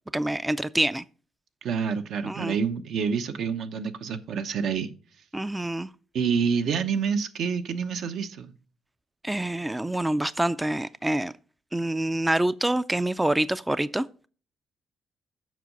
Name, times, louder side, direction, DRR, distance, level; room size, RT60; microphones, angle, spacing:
voice 1, 0.1-1.0 2.2-2.6 5.3-5.9 9.2-11.3 11.7-14.1, right 1 dB, 10° right, 0.3 m, -26 dB
voice 2, 1.6-4.9 6.1-8.5, right 6 dB, 75° right, 0.8 m, -27 dB
7.5 x 5.5 x 5.2 m
cardioid pair, 90°, 0 cm